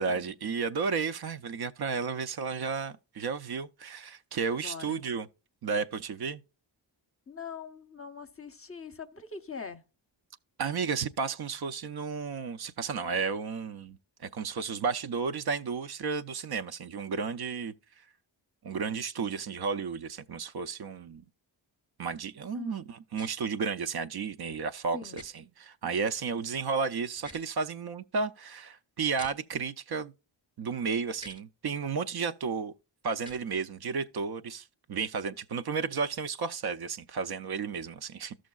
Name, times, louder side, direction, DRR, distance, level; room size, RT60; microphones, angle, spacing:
voice 1, 0.0-5.3 5.6-6.4 10.6-14.0 14.2-17.7 18.6-21.2 22.0-25.3 25.6-30.1 30.6-32.7 33.0-38.4, right 5 dB, 55° right, 0.5 m, -33 dB
voice 2, 4.6-5.0 7.3-9.8 22.5-22.8 24.9-25.2, left 5 dB, 30° left, 0.7 m, -42 dB
sound 1, 23.1-23.3 25.1-25.3 27.1-27.5 29.1-29.3 31.1-31.4 33.2-33.4, equal, 10° right, 0.7 m, -47 dB
13.5 x 6.3 x 2.3 m
cardioid pair, 60°, 48 cm